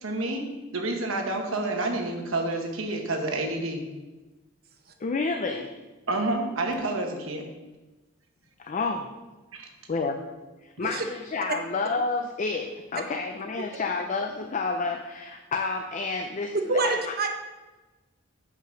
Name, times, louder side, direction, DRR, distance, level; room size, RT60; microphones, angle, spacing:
voice 1, 0.0-3.9 6.1-7.4 9.5-9.7, right 2 dB, 75° right, 3 dB, 1.1 m, -29 dB
voice 2, 5.0-5.7 8.6-9.1 9.9-10.2 10.6-17.1, left 4 dB, 40° left, 5 dB, 0.4 m, -30 dB
voice 3, 16.7-17.3, right 3 dB, 50° right, 5 dB, 0.8 m, -26 dB
6.0 x 5.4 x 5.2 m, 1.2 s
head